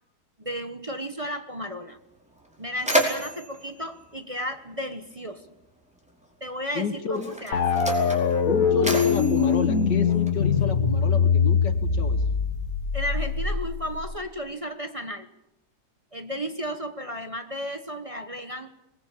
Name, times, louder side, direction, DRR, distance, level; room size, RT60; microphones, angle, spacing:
voice 1, 0.4-2.0 2.6-5.4 6.4-7.6 12.9-15.3 16.1-18.7, equal, 25° right, 7 dB, 1.1 m, -34 dB
Mechanisms, 1.9-2.0 2.4-5.1 6.1-6.2 7.0-10.6, right 1 dB, 5° right, 4.7 m, -31 dB
voice 2, 6.7-7.3 8.5-12.2, left 5 dB, 85° left, 9 dB, 2.3 m, -30 dB
sound 1, 7.5-14.2, left 6 dB, 55° left, 1.8 m, -23 dB
23.5 x 20.5 x 8.5 m, 0.88 s
omnidirectional pair, 1.8 m